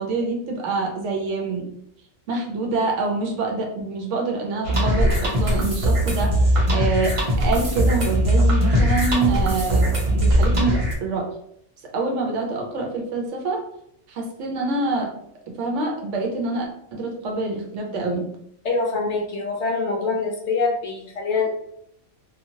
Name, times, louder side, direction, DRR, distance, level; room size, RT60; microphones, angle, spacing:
voice 1, 0.0-1.8 2.3-11.3 11.9-13.6 14.1-15.1 15.5-18.3, right 3 dB, 65° right, 1 dB, 0.9 m, -26 dB
sound 1, 4.6-10.9, equal, 35° right, 0.5 m, -20 dB
voice 2, 18.6-21.6, left 4 dB, 65° left, 0 dB, 0.8 m, -24 dB
2.8 x 2.4 x 2.6 m, 0.71 s
omnidirectional pair, 1.4 m